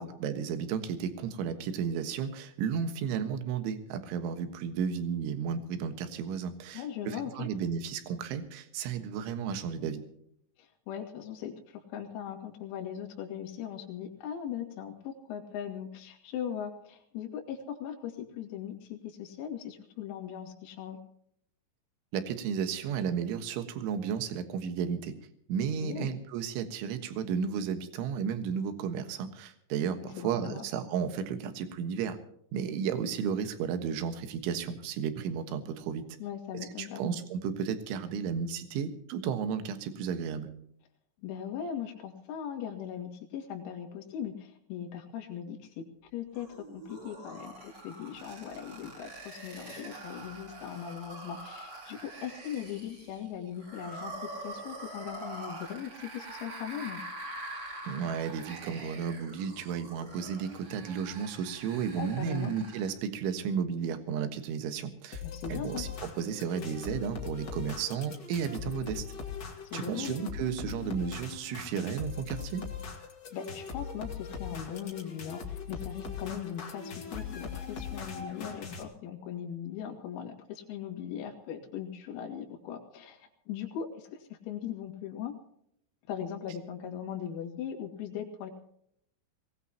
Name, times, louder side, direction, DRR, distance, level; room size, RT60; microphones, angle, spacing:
voice 1, 0.0-10.0 22.1-25.1 25.5-32.2 32.5-36.0 36.8-40.5 57.9-65.2 65.5-65.9 66.2-69.1 69.7-72.6, right 7 dB, 70° right, 9 dB, 3.7 m, -33 dB
voice 2, 6.7-7.5 10.6-21.0 25.8-26.1 30.2-30.6 36.2-37.0 41.2-57.0 62.0-62.5 65.2-65.9 69.6-70.2 73.3-85.4 86.1-88.5, left 9 dB, 90° left, 3 dB, 4.7 m, -39 dB
sound 1, 46.3-63.0, right 2 dB, 30° right, 4.9 m, -45 dB
sound 2, 65.1-78.8, left 6 dB, 70° left, 1.0 m, -40 dB
23.0 x 18.5 x 2.9 m, 0.70 s
omnidirectional pair, 6.0 m